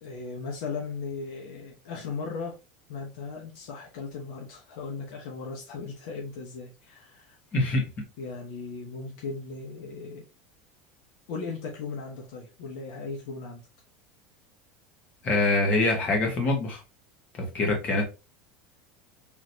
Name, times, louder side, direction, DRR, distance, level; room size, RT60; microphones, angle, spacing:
voice 1, 0.0-2.6 2.9-7.4 8.2-10.2 11.3-13.6, left 4 dB, 70° left, 1.1 m, -37 dB
voice 2, 7.5-7.8 15.2-16.8 17.5-18.0, left 2 dB, 35° left, 1.6 m, -24 dB
3.8 x 3.1 x 2.7 m
supercardioid pair, 130°, 4 cm